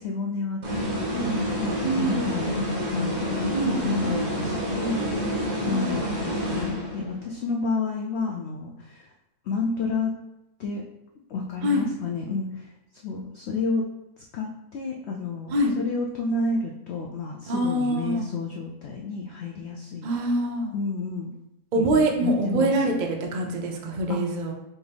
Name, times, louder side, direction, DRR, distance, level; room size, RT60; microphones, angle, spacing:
voice 1, 0.0-3.3 3.8-5.0 5.7-9.1 9.5-10.1 10.6-10.8 11.3-12.7 13.0-13.8 14.3-20.1 20.7-21.3 21.8-22.8 24.1-24.2, left 3 dB, 85° left, 0 dB, 0.5 m, -30 dB
sound 1, 0.6-7.2, equal, 40° right, 0.7 m, -28 dB
voice 2, 1.8-2.3 3.5-4.1 5.6-6.0 11.6-11.9 15.5-15.7 17.5-18.3 20.0-20.8 21.7-24.5, right 1 dB, 80° right, 1 dB, 0.4 m, -25 dB
4.3 x 2.9 x 3.4 m, 0.91 s
omnidirectional pair, 1.7 m